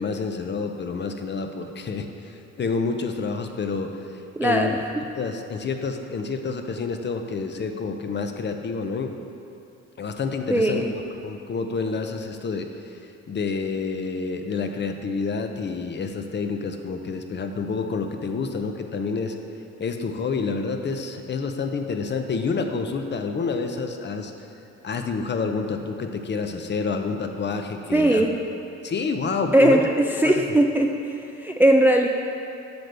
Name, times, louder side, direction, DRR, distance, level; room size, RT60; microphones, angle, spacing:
voice 1, 0.0-4.0 4.4-4.7 5.1-9.1 10.0-12.7 13.3-19.4 19.8-24.3 24.8-28.3 28.8-29.9 30.2-30.4, left 4 dB, 35° left, 5 dB, 0.6 m, -28 dB
voice 2, 4.4-4.7 10.5-10.9 27.9-28.3 29.5-29.8 30.2-30.9 31.4-32.1, right 1 dB, 5° right, 2 dB, 0.3 m, -18 dB
7.9 x 6.5 x 3.4 m, 2.6 s
cardioid pair, 90°, 30 cm